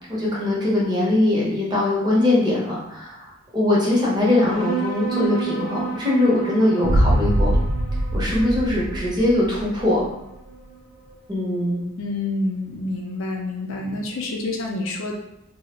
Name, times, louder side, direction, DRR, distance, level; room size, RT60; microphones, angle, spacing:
voice 1, 0.1-7.5 8.1-10.1 11.3-11.8, left 1 dB, 20° right, -6 dB, 0.7 m, -21 dB
sound 1, 4.2-11.1, right 7 dB, 40° right, 1.0 m, -32 dB
sound 2, 6.8-9.8, right 1 dB, 55° right, 0.4 m, -22 dB
voice 2, 12.0-15.1, left 2 dB, 60° left, 1 dB, 0.4 m, -28 dB
2.3 x 2.0 x 2.9 m, 0.85 s
head